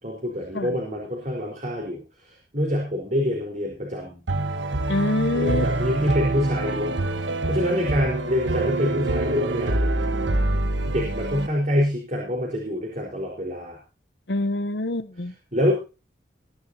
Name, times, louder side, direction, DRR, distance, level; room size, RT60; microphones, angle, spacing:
voice 1, 0.0-4.2 5.3-10.3 10.9-13.8 15.5-15.7, left 1 dB, 40° right, 4.5 m, -26 dB
sound 1, 4.3-11.5, right 2 dB, 85° right, 1.2 m, -25 dB
voice 2, 4.9-5.7 14.3-15.3, left 2 dB, 65° left, 1.0 m, -25 dB
21.5 x 11.0 x 2.8 m
head